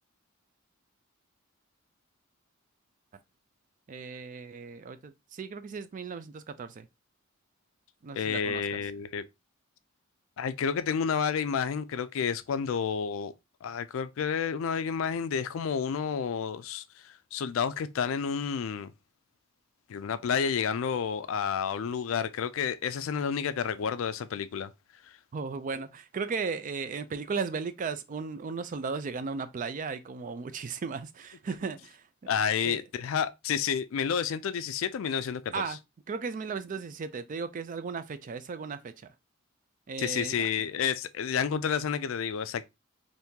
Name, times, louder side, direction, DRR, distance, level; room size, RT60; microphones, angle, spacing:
voice 1, 3.9-6.9 8.0-8.8 25.3-32.0 32.6-32.8 35.5-35.8 36.1-38.9 39.9-40.5, right 5 dB, 40° right, 0.4 m, -36 dB
voice 2, 8.1-9.2 10.4-13.3 13.6-18.9 19.9-24.7 32.3-35.8 40.0-42.6, left 7 dB, 65° left, 0.4 m, -30 dB
3.6 x 2.6 x 2.8 m
head